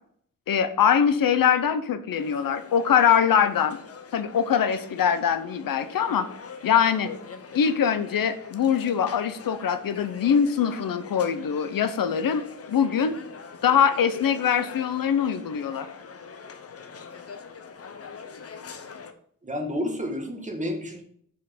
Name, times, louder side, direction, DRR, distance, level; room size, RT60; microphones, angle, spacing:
voice 1, 0.5-3.8 4.1-6.3 6.6-7.1 7.5-13.1 13.6-15.9, left 8 dB, 85° left, 11 dB, 0.8 m, -23 dB
sound 1, 2.1-19.1, left 5 dB, 45° left, 0.8 m, -43 dB
voice 2, 19.4-21.0, left 1 dB, 20° right, 2 dB, 1.7 m, -30 dB
6.4 x 5.6 x 6.7 m, 0.64 s
wide cardioid pair, 150°, 33 cm